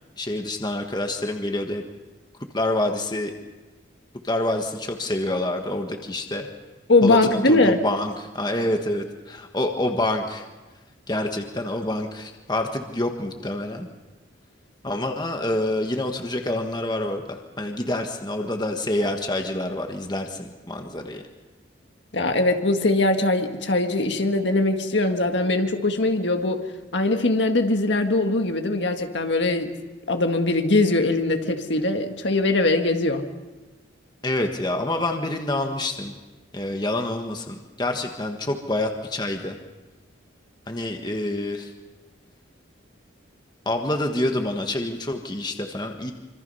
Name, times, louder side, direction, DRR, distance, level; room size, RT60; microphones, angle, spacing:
voice 1, 0.2-1.8 2.5-3.3 4.2-6.5 7.0-10.4 11.1-13.9 14.8-21.2 34.2-36.1 36.5-39.6 40.7-41.7 43.6-46.1, left 1 dB, 20° left, 4 dB, 1.4 m, -27 dB
voice 2, 6.9-7.8 22.1-26.7 26.9-29.7 30.1-33.3, left 2 dB, 60° left, 5 dB, 1.8 m, -21 dB
26.0 x 25.5 x 5.6 m, 1.2 s
head